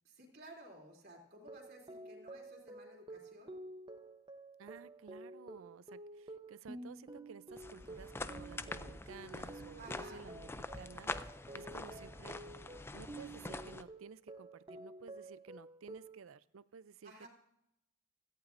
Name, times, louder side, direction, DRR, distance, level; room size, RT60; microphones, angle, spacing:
voice 1, 0.0-3.5 9.8-10.3 17.0-17.3, right 1 dB, 50° right, 1 dB, 3.0 m, -55 dB
sound 1, 1.4-16.2, right 2 dB, 25° right, 0.8 m, -51 dB
voice 2, 4.6-12.4 12.9-17.3, right 5 dB, 85° right, 17 dB, 0.5 m, -54 dB
sound 2, 7.5-13.8, left 2 dB, 10° left, 0.3 m, -45 dB
17.0 x 14.0 x 2.6 m, 0.80 s
head